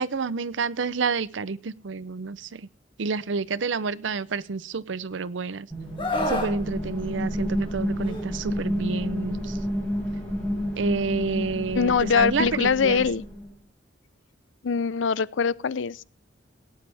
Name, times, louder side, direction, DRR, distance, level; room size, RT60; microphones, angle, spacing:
voice 1, 0.0-2.7 3.0-5.7 6.3-9.6 10.8-13.0, right 4 dB, 80° right, 0.6 m, -29 dB
sound 1, 5.7-13.5, equal, 5° left, 7.7 m, -30 dB
Screaming, 6.0-6.5 8.0-8.2, left 1 dB, 25° left, 2.2 m, -27 dB
voice 2, 11.7-13.2 14.6-16.0, left 6 dB, 85° left, 0.5 m, -23 dB
18.0 x 9.3 x 3.4 m
head